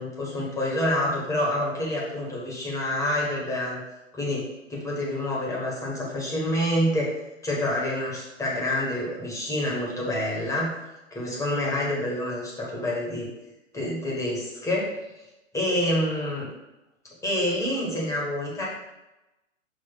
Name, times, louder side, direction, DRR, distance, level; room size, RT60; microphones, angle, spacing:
voice 1, 0.0-3.8 4.1-4.4 4.7-7.1 7.4-10.7 11.1-13.3 13.7-14.9 15.5-16.5 17.2-18.7, left 1 dB, 10° left, -5 dB, 1.6 m, -27 dB
6.2 x 2.9 x 5.7 m, 0.98 s
figure-of-eight pair, 115°, 40 cm